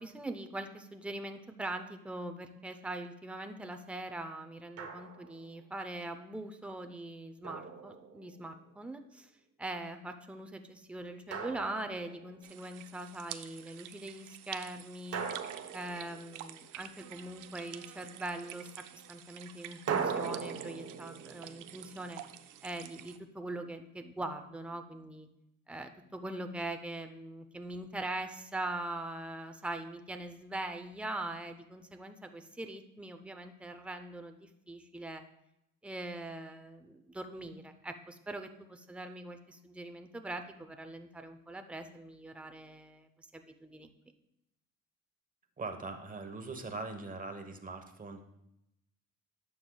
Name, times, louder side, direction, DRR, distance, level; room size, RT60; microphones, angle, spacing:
voice 1, 0.0-9.3 9.6-15.3 15.7-22.2 22.6-25.3 25.7-35.2 35.8-43.9, right 2 dB, 5° right, 6 dB, 0.7 m, -42 dB
Drum, 4.8-5.5 7.4-8.5 11.3-12.5 15.1-16.8 19.9-22.8, right 6 dB, 50° right, 1.0 m, -39 dB
sound 1, 12.4-23.2, right 12 dB, 90° right, 0.6 m, -49 dB
voice 2, 45.6-48.2, right 3 dB, 25° right, 6 dB, 1.2 m, -41 dB
11.5 x 7.1 x 2.3 m, 0.83 s
cardioid pair, 90°, 30 cm